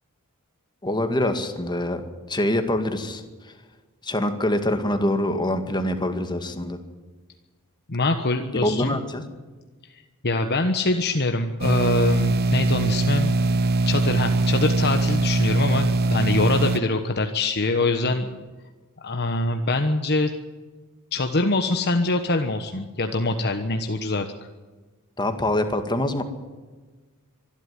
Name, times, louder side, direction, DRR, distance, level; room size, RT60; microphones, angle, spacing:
voice 1, 0.8-2.0 2.3-3.2 4.0-6.8 8.5-9.2 25.2-26.2, left 1 dB, 20° left, 7 dB, 2.1 m, -24 dB
voice 2, 7.9-9.0 10.2-13.4 13.9-18.3 19.0-20.3 21.1-24.3, left 2 dB, 50° left, 6 dB, 1.3 m, -24 dB
sound 1, 11.6-16.8, right 2 dB, 45° right, 0.7 m, -22 dB
25.0 x 12.0 x 9.8 m, 1.3 s
head